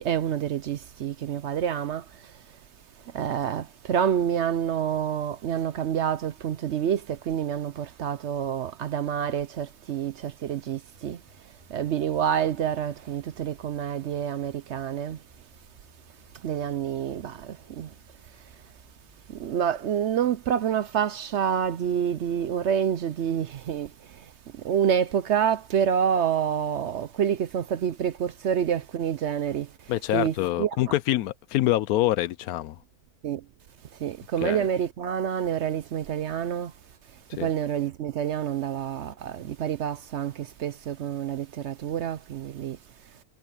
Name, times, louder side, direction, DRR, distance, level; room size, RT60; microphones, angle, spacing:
voice 1, 0.0-2.4 3.1-11.2 11.7-15.2 16.3-17.9 19.3-30.7 33.2-33.4 34.0-36.7 37.3-42.8, right 9 dB, 60° right, 0.8 m, -28 dB
sound 1, 10.9-19.6, right 1 dB, 25° right, 6.5 m, -60 dB
voice 2, 29.9-32.8 34.4-34.7 37.4-37.5, left 14 dB, 80° left, 1.1 m, -25 dB
omnidirectional pair, 1.5 m